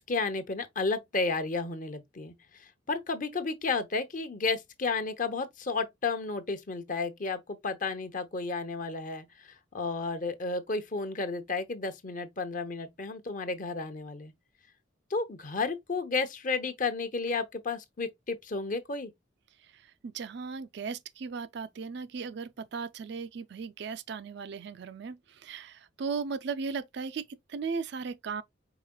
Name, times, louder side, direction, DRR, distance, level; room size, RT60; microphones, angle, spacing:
voice 1, 0.0-14.3 15.1-19.1, left 4 dB, 40° left, 0.8 m, -32 dB
voice 2, 19.7-28.4, right 5 dB, 60° right, 0.4 m, -37 dB
4.8 x 4.5 x 2.2 m
head